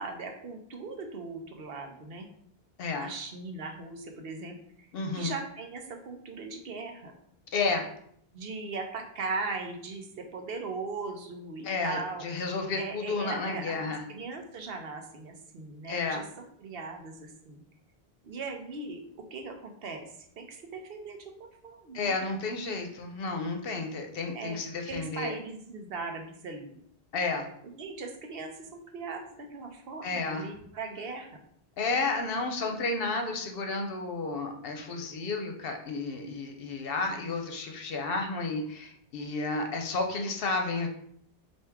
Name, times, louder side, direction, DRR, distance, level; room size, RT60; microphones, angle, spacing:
voice 1, 0.0-2.3 3.0-4.5 5.1-7.1 8.3-12.2 12.8-16.2 16.6-17.6 18.2-19.0 19.3-22.2 24.3-24.6 24.9-26.8 27.8-31.4, right 4 dB, 70° right, 4 dB, 0.9 m, -39 dB
voice 2, 2.8-3.1 4.9-5.3 7.5-7.9 11.6-14.0 15.9-16.2 21.9-25.3 27.1-27.5 30.0-30.5 31.8-40.9, left 3 dB, 70° left, 4 dB, 0.9 m, -32 dB
4.4 x 2.7 x 3.5 m, 0.67 s
omnidirectional pair, 1.0 m